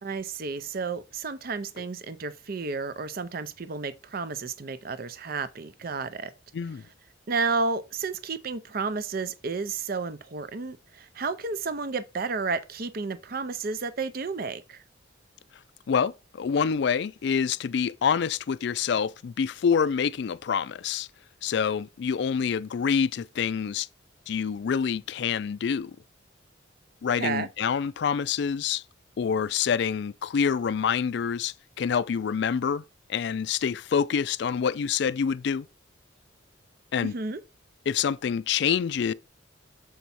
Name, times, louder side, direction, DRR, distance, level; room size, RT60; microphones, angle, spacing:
voice 1, 0.0-6.3 7.3-14.8 27.1-27.5 37.0-37.4, right 4 dB, 50° right, 0.6 m, -32 dB
voice 2, 6.5-6.8 15.9-21.1 21.4-23.9 24.3-26.0 27.0-28.8 29.2-32.8 33.1-35.7 36.9-37.1 37.9-39.1, left 7 dB, 60° left, 0.3 m, -26 dB
7.0 x 4.6 x 4.1 m
head